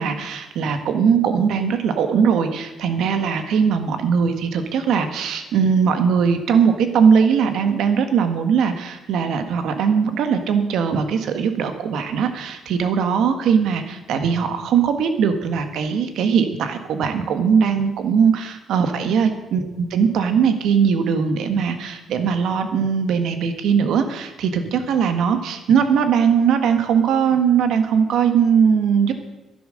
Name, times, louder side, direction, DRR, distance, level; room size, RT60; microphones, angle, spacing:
voice 1, 0.0-19.6 19.9-29.1, right 6 dB, 80° right, 8 dB, 1.5 m, -20 dB
11.5 x 11.0 x 6.5 m, 1.0 s
cardioid pair, 90°, 0 cm